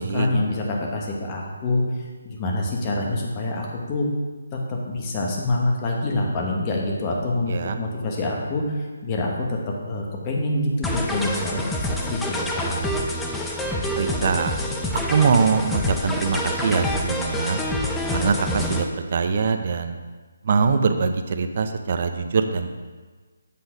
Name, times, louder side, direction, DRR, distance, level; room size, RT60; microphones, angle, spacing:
voice 1, 0.0-1.8 2.2-4.1 4.5-12.8, left 2 dB, 25° left, -1 dB, 1.2 m, -26 dB
voice 2, 7.5-7.8 13.9-14.5 15.1-17.6 18.1-20.0 20.4-22.7, right 5 dB, 45° right, 8 dB, 0.6 m, -23 dB
sound 1, 10.8-18.8, left 1 dB, 5° left, 0.5 m, -27 dB
8.5 x 3.9 x 4.9 m, 1.4 s
figure-of-eight pair, 155°, 0 cm